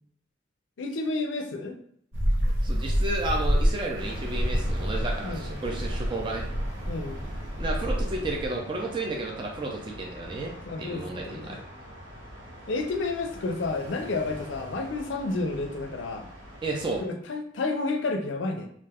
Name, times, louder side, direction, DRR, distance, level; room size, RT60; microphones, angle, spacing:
voice 1, 0.8-1.8 5.2-5.6 6.9-7.3 10.7-11.6 12.7-16.3 17.0-18.7, left 3 dB, 70° left, 5 dB, 0.4 m, -31 dB
sound 1, 2.1-8.5, equal, 90° right, 0.7 m, -28 dB
voice 2, 2.6-6.4 7.6-10.5 10.8-11.6 16.6-17.0, right 2 dB, 25° right, 0 dB, 0.4 m, -32 dB
sound 2, 3.9-17.1, equal, 65° right, 1.4 m, -42 dB
2.4 x 2.2 x 3.4 m, 0.68 s
head